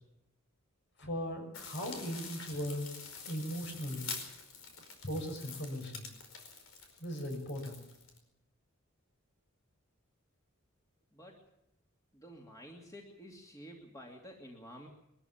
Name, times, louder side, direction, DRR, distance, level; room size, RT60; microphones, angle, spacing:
voice 1, 1.0-2.9 3.2-4.1 5.0-6.1 7.0-7.8, equal, 55° left, 4 dB, 6.3 m, -38 dB
sound 1, 1.5-8.2, left 5 dB, 90° left, 5.0 m, -46 dB
voice 2, 11.1-11.4 12.1-14.9, equal, 15° left, 1 dB, 2.7 m, -51 dB
22.5 x 14.0 x 8.8 m, 0.80 s
head